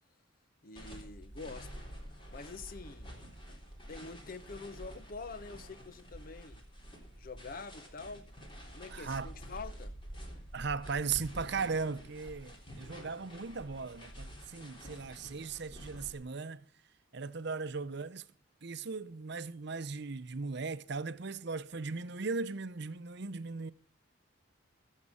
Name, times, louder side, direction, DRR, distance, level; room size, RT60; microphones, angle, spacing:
voice 1, 0.6-1.9 2.3-3.1 3.9-6.6 7.1-8.3 8.7-9.9, left 4 dB, 45° left, 0.7 m, -46 dB
sound 1, 0.8-16.2, equal, 25° left, 3.6 m, -48 dB
voice 2, 8.9-9.3 10.5-16.7 17.1-18.3 18.6-23.7, right 4 dB, 55° right, 0.7 m, -38 dB
22.0 x 7.5 x 5.5 m
head